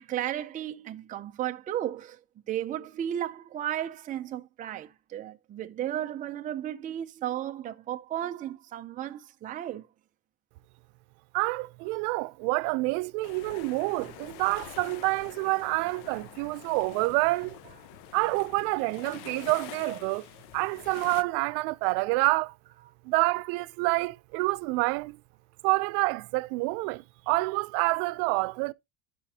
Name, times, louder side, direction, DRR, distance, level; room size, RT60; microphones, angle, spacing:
voice 1, 0.0-2.2 2.5-9.9 19.8-20.0, right 11 dB, 20° right, 0.4 m, -34 dB
voice 2, 11.3-17.6 18.1-20.2 20.5-22.5 23.0-25.2 25.6-28.7, right 24 dB, 85° right, 0.6 m, -28 dB
sound 1, 13.2-21.2, left 13 dB, 60° left, 0.7 m, -46 dB
12.5 x 5.0 x 2.8 m
cardioid pair, 160°, 44 cm